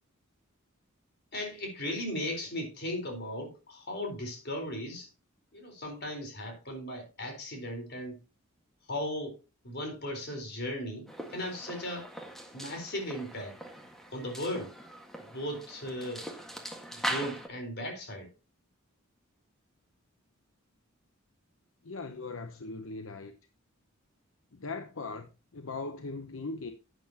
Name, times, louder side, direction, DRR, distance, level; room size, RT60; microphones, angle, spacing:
voice 1, 1.3-5.1 5.5-8.2 8.9-9.4 9.6-12.1 12.5-13.6 14.1-14.8 15.3-16.3 16.9-18.3, left 1 dB, 55° left, 4.3 m, -37 dB
sound 1, 11.1-17.5, right 1 dB, ahead, 1.7 m, -41 dB
voice 2, 21.8-23.3 24.5-26.7, left 3 dB, 75° left, 0.8 m, -39 dB
11.5 x 9.0 x 2.9 m
head